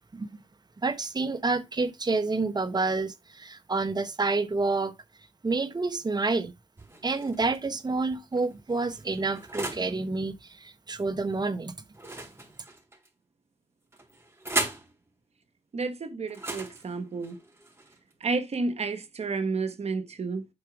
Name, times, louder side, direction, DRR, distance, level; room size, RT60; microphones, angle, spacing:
voice 1, 0.8-4.9 5.4-6.5 7.0-10.3 10.6-11.7, right 3 dB, 40° right, 1.3 m, -28 dB
sound 1, 6.8-7.6 8.3-9.9 11.9-13.1 13.9-14.9 16.3-18.2, right 2 dB, 20° right, 4.3 m, -36 dB
voice 2, 15.7-17.4 18.2-20.5, right 4 dB, 70° right, 1.5 m, -31 dB
8.5 x 5.0 x 4.9 m
cardioid pair, 45°, 11 cm